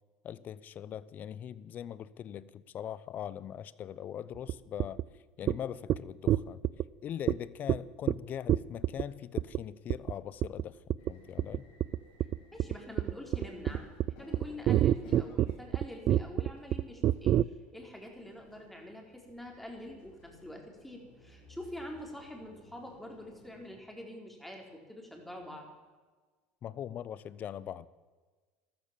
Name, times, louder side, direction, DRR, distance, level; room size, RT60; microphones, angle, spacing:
voice 1, 0.2-5.0 5.4-6.6 7.0-11.7 26.6-27.9, left 10 dB, 45° left, 18 dB, 0.8 m, -41 dB
sound 1, 4.5-4.6 4.8-5.0 5.5-5.6 5.9-6.0 6.3-6.9 7.3-7.4 7.7-7.8 8.1-8.2 8.5-9.0 9.4-9.6 9.9-10.1 10.4-10.7 10.9-11.1 11.4-17.4, right 12 dB, 50° right, 0.4 m, -27 dB
sound 2, 11.0-23.7, left 3 dB, 75° left, 6.9 m, -58 dB
voice 2, 12.5-13.9 14.2-17.4 17.7-25.7, left 1 dB, 5° left, 1 dB, 4.3 m, -46 dB
14.0 x 13.5 x 7.5 m, 1.4 s
supercardioid pair, 100°, 4 cm